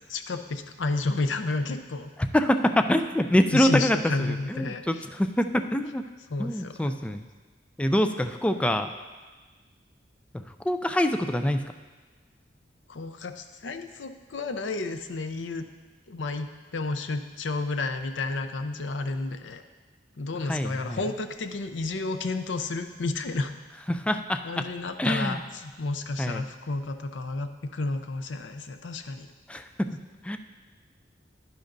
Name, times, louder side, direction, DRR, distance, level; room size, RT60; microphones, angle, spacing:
voice 1, 0.1-2.1 3.5-5.1 6.3-7.1 12.9-15.6 16.1-19.6 20.2-23.5 24.4-29.3, left 3 dB, 90° left, 8 dB, 0.6 m, -31 dB
voice 2, 2.3-4.0 4.5-6.0 6.4-7.2 7.8-8.9 10.7-11.6 20.5-21.0 23.9-24.4 25.0-25.4 26.2-26.4 29.5-29.7 30.2-30.4, equal, 5° left, 7 dB, 0.3 m, -25 dB
11.0 x 10.0 x 2.6 m, 1.3 s
head